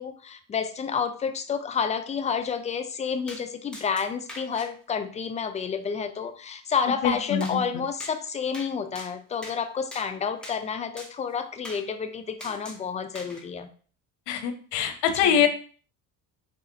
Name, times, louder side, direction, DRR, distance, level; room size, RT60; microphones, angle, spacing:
voice 1, 0.0-13.7 15.2-15.5, left 6 dB, 20° left, 8 dB, 0.3 m, -30 dB
sound 1, 3.3-3.4 3.7-4.7 7.4-7.6 8.0-8.2 8.5-8.7 8.9-9.6 9.9-10.1 10.4-10.6 11.0-11.1 11.6-11.8 12.4-12.8 13.1-13.4, left 1 dB, ahead, 0.8 m, -41 dB
voice 2, 7.0-7.6 14.3-15.5, left 8 dB, 75° left, 7 dB, 0.7 m, -24 dB
4.0 x 2.4 x 2.7 m, 0.41 s
supercardioid pair, 70°, 44 cm